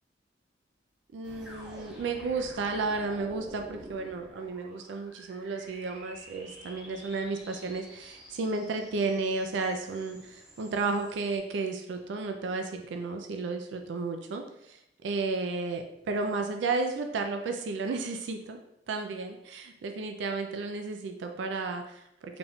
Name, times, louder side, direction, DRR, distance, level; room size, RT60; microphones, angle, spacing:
voice 1, 1.1-18.6 18.9-22.4, right 3 dB, 85° right, 4 dB, 0.4 m, -33 dB
sound 1, 1.2-11.4, equal, 5° right, 0.9 m, -49 dB
3.9 x 3.5 x 2.3 m, 0.81 s
head